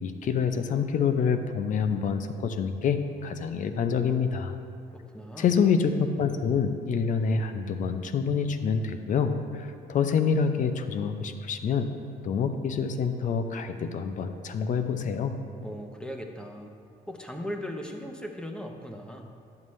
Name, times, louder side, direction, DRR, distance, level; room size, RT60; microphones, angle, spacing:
voice 1, 0.0-4.6 5.4-11.9 12.2-15.4, left 6 dB, 50° left, 8 dB, 0.6 m, -27 dB
voice 2, 4.9-5.5 15.6-16.7 17.1-19.3, equal, 5° left, 3 dB, 0.8 m, -38 dB
11.0 x 7.2 x 3.2 m, 2.5 s
cardioid pair, 110°, 17 cm